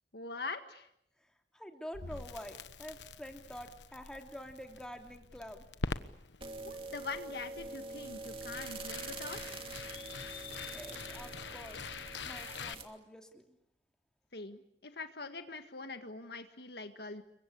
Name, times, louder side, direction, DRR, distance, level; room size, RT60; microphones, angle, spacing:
voice 1, 0.1-0.9 6.6-9.4 14.3-17.2, left 3 dB, 60° left, 8 dB, 1.8 m, -43 dB
voice 2, 1.2-5.6 10.7-11.8 12.2-13.6, equal, 5° left, 3 dB, 3.0 m, -47 dB
Crackle, 1.9-12.7, left 4 dB, 85° left, 1.2 m, -45 dB
sound 1, 6.4-12.8, right 3 dB, 30° right, 2.6 m, -45 dB
29.0 x 23.5 x 8.6 m, 0.75 s
head